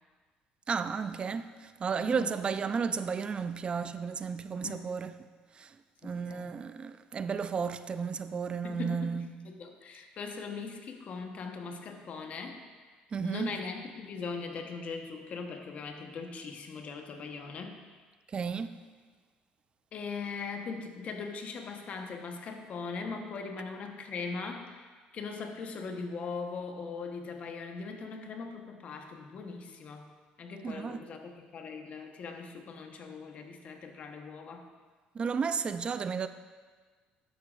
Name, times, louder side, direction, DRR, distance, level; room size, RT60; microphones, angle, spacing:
voice 1, 0.7-5.2 5.6-5.8 6.0-9.3 13.1-13.5 18.3-18.7 30.6-31.0 35.1-36.3, right 6 dB, 35° right, 0.4 m, -33 dB
voice 2, 2.0-2.3 4.6-4.9 6.0-6.6 8.6-12.6 13.2-17.8 19.9-30.1 30.4-34.7, left 4 dB, 50° left, 1.0 m, -40 dB
11.5 x 8.6 x 2.5 m
cardioid pair, 95°, 3 cm